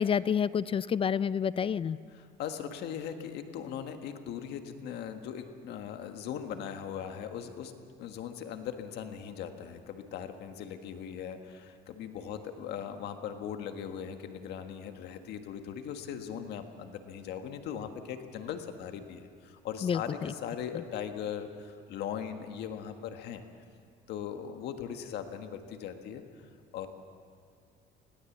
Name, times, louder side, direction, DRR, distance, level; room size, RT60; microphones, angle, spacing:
voice 1, 0.0-2.0 19.8-20.3 20.7-20.8, left 7 dB, 35° left, 18 dB, 0.4 m, -29 dB
voice 2, 2.4-23.5 24.1-26.2 26.7-26.9, left 8 dB, 75° left, 6 dB, 1.6 m, -39 dB
20.5 x 17.0 x 7.3 m, 2.2 s
cardioid pair, 110°, 17 cm